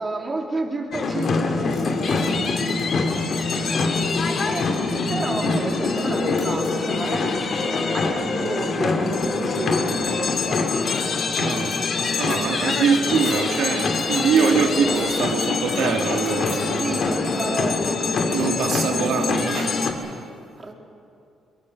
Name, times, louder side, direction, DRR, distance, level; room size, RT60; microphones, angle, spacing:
voice 1, 0.0-2.5 2.9-3.0 4.3-7.4 7.9-11.0 14.1-15.1 16.8-18.7 20.6-20.7, right 2 dB, 30° right, 1 dB, 3.1 m, -31 dB
sound 1, 0.9-19.9, left 4 dB, 55° left, 2.4 m, -24 dB
sound 2, 1.6-4.8 5.3-5.4 5.6-17.3, left 4 dB, 80° left, 5.6 m, -44 dB
voice 2, 11.3-11.8 12.2-17.0 18.3-20.3, right 6 dB, 80° right, 4 dB, 2.2 m, -24 dB
23.0 x 22.0 x 6.5 m, 2.6 s
cardioid pair, 90°, 0 cm